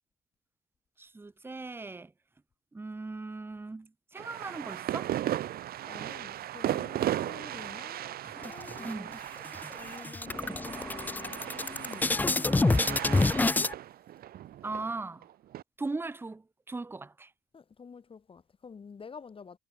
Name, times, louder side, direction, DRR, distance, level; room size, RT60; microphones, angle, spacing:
voice 1, 1.0-2.1 2.7-5.2 8.8-9.1 10.5-10.6 14.6-15.2 15.8-17.3, right 3 dB, 15° right, 0.9 m, -38 dB
sound 1, 4.2-15.6, right 12 dB, 65° right, 2.3 m, -36 dB
voice 2, 5.5-9.1 9.7-13.8 17.5-19.6, left 5 dB, 30° left, 6.6 m, -49 dB
sound 2, 8.4-9.2 9.5-9.7 10.0-13.7, left 3 dB, 10° left, 0.4 m, -27 dB
cardioid pair, 110°, 17 cm